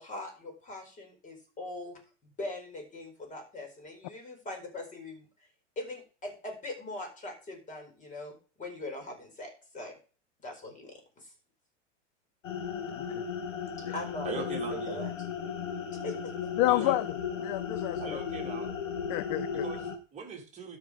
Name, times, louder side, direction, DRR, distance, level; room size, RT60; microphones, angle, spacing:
voice 1, 0.0-5.2 5.8-10.0 10.4-11.3 13.8-15.1 16.0-16.3, left 2 dB, 20° left, 3 dB, 4.6 m, -41 dB
sound 1, 12.4-20.0, left 6 dB, 90° left, 2.0 m, -35 dB
voice 2, 12.9-13.2 13.8-13.9 16.6-18.2 19.1-19.6, left 16 dB, 40° left, 16 dB, 0.5 m, -30 dB
voice 3, 14.2-15.1 16.7-17.0 18.0-18.7 19.5-20.8, right 5 dB, 20° right, 0 dB, 3.0 m, -40 dB
13.0 x 4.8 x 5.0 m, 0.36 s
hypercardioid pair, 125°, 37 cm